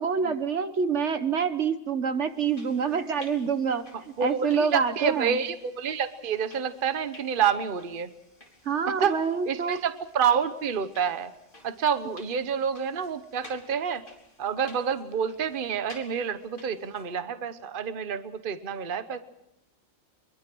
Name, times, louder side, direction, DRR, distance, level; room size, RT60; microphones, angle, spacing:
voice 1, 0.0-5.4 8.6-9.8, right 6 dB, 60° right, 11 dB, 1.3 m, -27 dB
sound 1, 2.2-17.2, left 1 dB, 40° left, 4.3 m, -54 dB
voice 2, 4.2-8.1 8.9-9.1 9.4-11.3 11.6-14.0 14.4-19.2, right 7 dB, 40° right, 11 dB, 1.2 m, -28 dB
23.5 x 22.5 x 6.2 m, 0.86 s
omnidirectional pair, 1.4 m